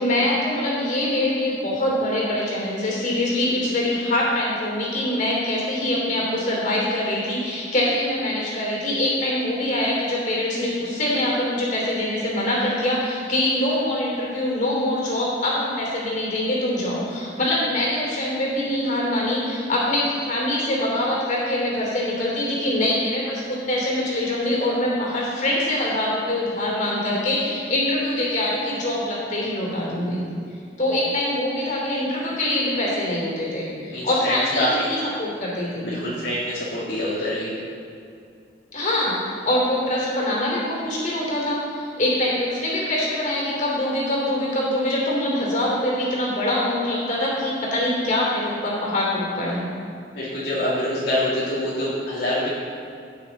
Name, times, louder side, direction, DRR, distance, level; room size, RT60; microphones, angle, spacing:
voice 1, 0.0-30.2 30.8-35.9 38.7-49.7, left 1 dB, 45° left, -4 dB, 3.0 m, -24 dB
voice 2, 33.9-34.9 35.8-37.5 50.1-52.5, left 1 dB, 65° left, -8 dB, 2.1 m, -25 dB
16.5 x 6.4 x 4.0 m, 2.4 s
head